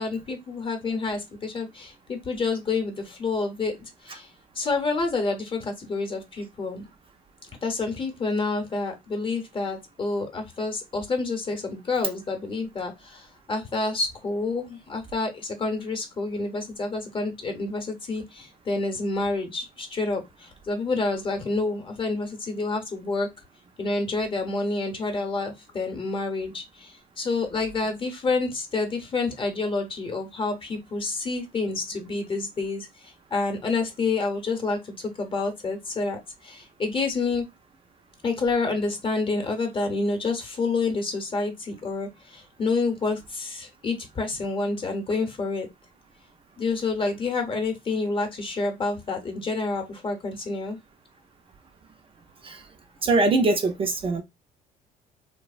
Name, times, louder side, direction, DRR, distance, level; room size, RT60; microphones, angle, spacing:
voice 1, 0.0-4.3 4.5-6.9 7.6-23.3 23.8-37.4 38.2-45.7 46.6-50.8, left 3 dB, 30° left, 0.8 m, -28 dB
voice 2, 53.0-54.2, right 3 dB, 35° right, 0.4 m, -22 dB
2.7 x 2.0 x 2.4 m
cardioid pair, 110°, 17 cm